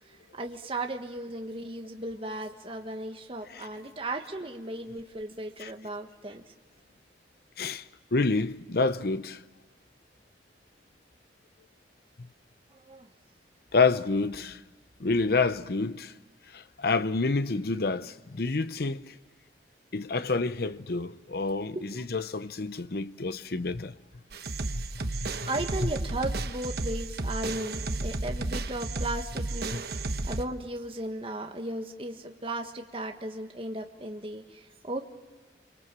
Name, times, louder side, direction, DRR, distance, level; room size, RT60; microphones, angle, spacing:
voice 1, 0.1-6.4 12.7-13.1 21.7-22.0 25.0-25.1 25.5-35.0, right 1 dB, 30° right, 1.5 m, -36 dB
voice 2, 7.6-9.4 12.2-12.3 13.7-14.6 15.0-16.1 16.5-19.2 19.9-23.9 24.7-25.5 25.8-25.9 29.7-29.8, left 3 dB, 60° left, 0.8 m, -28 dB
sound 1, 24.3-30.5, right 2 dB, 60° right, 1.0 m, -33 dB
28.5 x 24.5 x 7.6 m
head